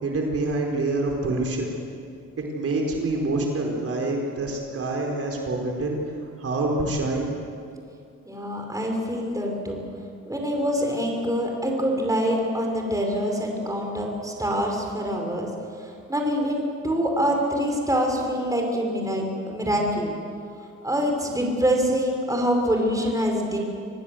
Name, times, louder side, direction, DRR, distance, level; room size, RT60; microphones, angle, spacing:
voice 1, 0.0-1.7 2.4-6.0 6.4-7.3, right 2 dB, 50° right, 0 dB, 4.6 m, -26 dB
voice 2, 8.3-9.8 10.3-15.5 15.8-20.1 20.8-23.6, equal, 10° right, 1 dB, 5.3 m, -25 dB
26.5 x 19.0 x 7.9 m, 2.4 s
cardioid pair, 90°, 30 cm